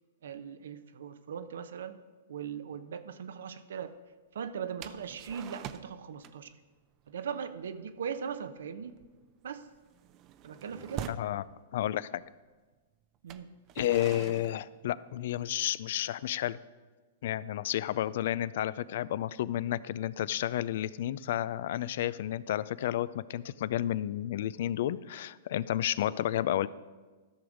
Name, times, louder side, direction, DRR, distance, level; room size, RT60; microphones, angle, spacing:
voice 1, 0.2-2.0 2.3-4.0 4.3-6.6 7.1-9.0 9.4-9.7 10.4-11.1 13.2-13.5, right 7 dB, 80° right, 11 dB, 0.7 m, -39 dB
sound 1, 4.8-6.0 6.2-6.5 6.8-7.1 7.5-7.7 8.0-8.3 8.7-11.4 12.2-12.3 13.1-15.5, right 10 dB, 35° right, 0.5 m, -45 dB
voice 2, 11.1-11.4 11.7-12.2 13.8-16.6 17.2-26.7, left 12 dB, 65° left, 19 dB, 0.3 m, -31 dB
13.0 x 6.3 x 5.0 m, 1.3 s
hypercardioid pair, 130°, 0 cm